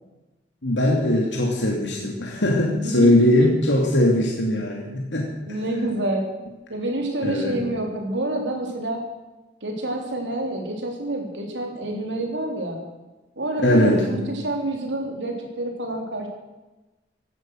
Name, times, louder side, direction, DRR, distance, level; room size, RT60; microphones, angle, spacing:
voice 1, 0.6-5.3 7.2-7.6 13.6-14.1, left 1 dB, 90° left, -1 dB, 2.7 m, -20 dB
voice 2, 2.8-3.5 5.5-6.3 6.7-9.0 9.6-12.8 13.4-14.2 14.4-16.3, right 1 dB, 90° right, 2 dB, 3.3 m, -28 dB
17.0 x 11.5 x 6.5 m, 1.1 s
head